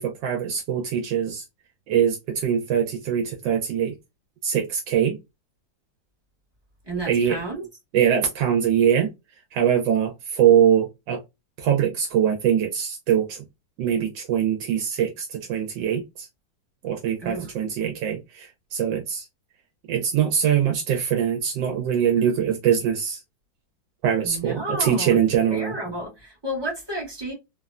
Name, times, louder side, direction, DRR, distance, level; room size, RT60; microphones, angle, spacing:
voice 1, 0.0-1.4 1.9-4.0 4.4-5.2 7.1-7.4 7.9-9.1 9.5-11.2 11.6-13.4 13.8-16.3 16.8-19.3 19.9-23.2 24.0-25.8, right 9 dB, 80° right, 1.2 m, -22 dB
voice 2, 6.9-7.7 17.2-17.5 24.2-25.2 25.5-27.3, right 1 dB, 25° right, 0.5 m, -31 dB
3.2 x 2.0 x 2.3 m
omnidirectional pair, 2.0 m